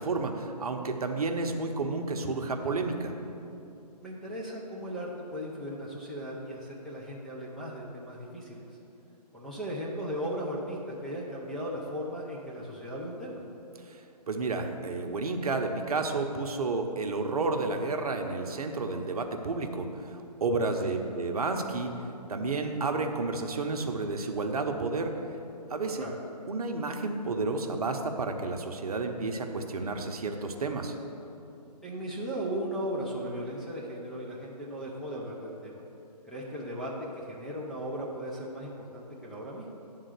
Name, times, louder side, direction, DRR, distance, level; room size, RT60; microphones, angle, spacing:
voice 1, 0.0-3.1 13.8-14.0 14.3-21.9 22.3-25.1 25.7-26.1 26.5-31.0, right 3 dB, 65° right, 5 dB, 0.8 m, -31 dB
voice 2, 4.0-8.7 9.3-13.4 20.8-21.0 26.0-26.1 31.8-35.8 36.3-39.7, equal, ahead, -7 dB, 0.5 m, -37 dB
9.9 x 3.8 x 6.6 m, 2.8 s
figure-of-eight pair, 140°, 21 cm